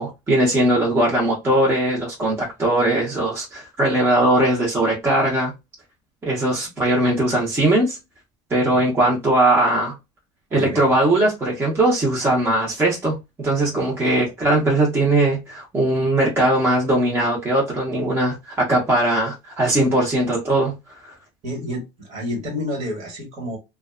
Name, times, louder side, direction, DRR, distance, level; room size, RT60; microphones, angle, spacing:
voice 1, 0.0-5.5 6.2-8.0 8.5-9.9 10.5-20.7 21.0-21.1, right 1 dB, 15° right, 0.7 m, -20 dB
voice 2, 10.5-10.8 21.4-23.6, left 1 dB, 40° right, 1.3 m, -29 dB
2.5 x 2.2 x 2.3 m
cardioid pair, 150°, 16 cm